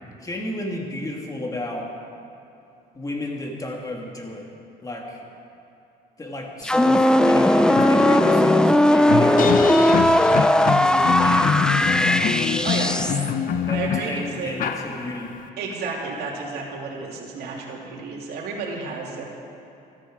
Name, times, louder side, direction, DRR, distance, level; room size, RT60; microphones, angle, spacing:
voice 1, 0.2-1.9 2.9-4.6 4.8-5.3 6.2-9.5 10.3-12.7 13.5-15.4, left 1 dB, 20° left, 1 dB, 2.2 m, -33 dB
sound 1, 6.6-13.3, left 1 dB, 5° left, 0.5 m, -18 dB
sound 2, 7.0-7.1 7.4-15.4, left 7 dB, 55° left, 0.8 m, -25 dB
voice 2, 12.6-13.0 13.7-14.6 15.6-19.2, right 4 dB, 70° right, -3 dB, 3.0 m, -31 dB
14.5 x 13.5 x 5.1 m, 2.8 s
cardioid pair, 110°, 17 cm